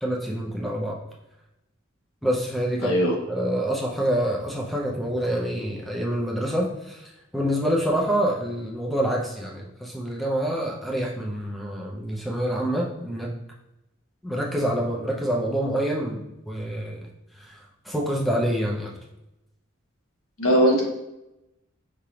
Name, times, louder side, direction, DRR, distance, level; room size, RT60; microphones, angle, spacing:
voice 1, 0.0-1.0 2.2-3.0 3.3-13.3 14.2-17.1 17.4-17.6 17.9-18.9, right 1 dB, ahead, -3 dB, 0.6 m, -26 dB
voice 2, 2.8-3.1 20.4-20.8, equal, 85° left, -1 dB, 1.2 m, -19 dB
5.0 x 3.3 x 2.9 m, 0.92 s
head